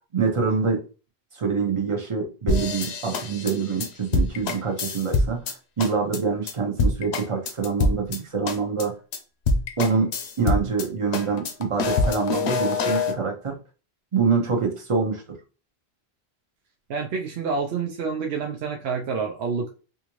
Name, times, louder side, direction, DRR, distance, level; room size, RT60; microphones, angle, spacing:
voice 1, 0.1-0.8 1.3-5.4 5.8-8.9 9.8-10.1 10.4-13.6 14.1-15.2, right 5 dB, 35° right, 2 dB, 0.7 m, -25 dB
sound 1, 2.5-5.5 5.8-6.2 6.5-6.6 6.8-8.2 8.5-8.8 9.1-9.2 9.5-10.9 11.1-13.1, left 3 dB, 85° left, 0.9 m, -25 dB
voice 2, 16.9-19.7, right 5 dB, 75° right, 2 dB, 0.8 m, -28 dB
3.5 x 2.5 x 3.0 m, 0.35 s
omnidirectional pair, 1.1 m